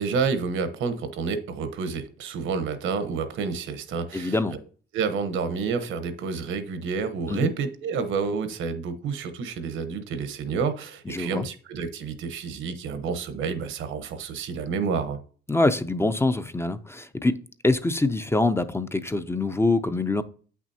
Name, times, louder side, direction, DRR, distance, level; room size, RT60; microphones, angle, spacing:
voice 1, 0.0-4.4 4.9-15.2, right 5 dB, 80° right, 1.1 m, -29 dB
voice 2, 4.1-4.5 7.3-7.5 11.1-11.5 15.5-20.2, left 2 dB, 10° left, 0.5 m, -24 dB
8.3 x 6.0 x 2.8 m
cardioid pair, 90°, 20 cm